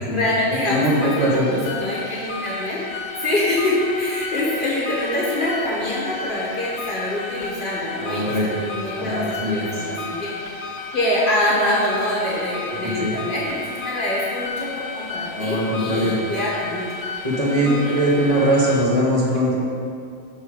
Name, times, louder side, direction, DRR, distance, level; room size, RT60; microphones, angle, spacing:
voice 1, 0.1-2.8 3.2-10.7 10.9-16.9 17.6-18.0, left 1 dB, 50° left, -5 dB, 1.2 m, -25 dB
sound 1, 0.6-18.9, left 3 dB, 70° left, 1.0 m, -33 dB
voice 2, 0.6-1.5 8.0-8.5 9.0-9.8 12.8-13.2 15.3-16.2 17.2-19.6, equal, 35° right, -7 dB, 1.6 m, -21 dB
6.0 x 5.5 x 4.8 m, 2.4 s
omnidirectional pair, 1.1 m